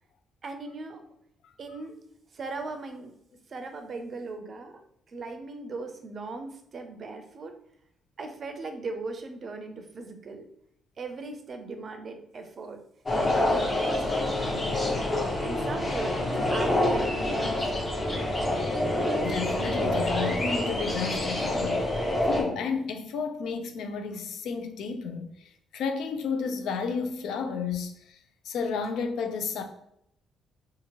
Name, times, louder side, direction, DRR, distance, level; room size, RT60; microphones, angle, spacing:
voice 1, 0.4-1.0 1.6-2.0 2.3-3.2 3.5-4.8 5.1-7.5 8.2-10.5 11.0-12.8 13.2-15.1 15.4-17.7 21.5-21.6, right 3 dB, 45° right, 0.5 m, -39 dB
sound 1, 13.1-22.4, left 1 dB, 25° left, 0.9 m, -27 dB
voice 2, 19.2-28.2 28.4-29.6, left 5 dB, 80° left, 0.4 m, -32 dB
2.7 x 2.4 x 2.9 m
cardioid pair, 90°, 0 cm